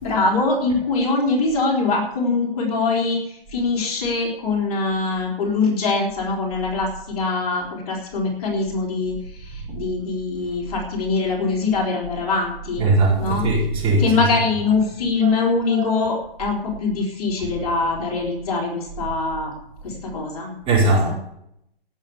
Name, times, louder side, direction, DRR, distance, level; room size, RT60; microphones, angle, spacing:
voice 1, 0.0-12.9 13.2-13.5 14.0-19.5 19.8-20.5, left 3 dB, 35° left, -1 dB, 3.7 m, -23 dB
voice 2, 12.8-14.3 15.2-15.3 15.7-15.8 17.4-17.6 20.7-21.1, right 2 dB, 15° right, -4 dB, 4.9 m, -20 dB
17.0 x 7.2 x 7.1 m, 0.78 s
hypercardioid pair, 145°, 30 cm